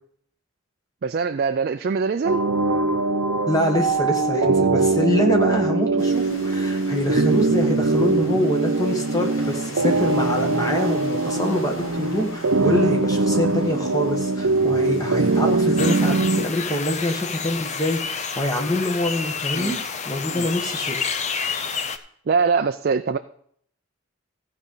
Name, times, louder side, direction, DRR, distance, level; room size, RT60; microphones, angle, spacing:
voice 1, 1.0-2.5 19.5-19.8 20.3-20.5 22.3-23.2, right 5 dB, 45° right, 9 dB, 0.4 m, -23 dB
sound 1, 2.2-16.5, right 3 dB, 80° right, 0.7 m, -22 dB
voice 2, 3.5-19.8 20.0-21.1, left 1 dB, 15° left, 2 dB, 1.4 m, -25 dB
sound 2, 6.0-16.3, left 1 dB, 70° left, 2.0 m, -41 dB
sound 3, 15.8-22.0, left 6 dB, 35° left, 0.6 m, -29 dB
15.0 x 5.1 x 5.5 m, 0.64 s
head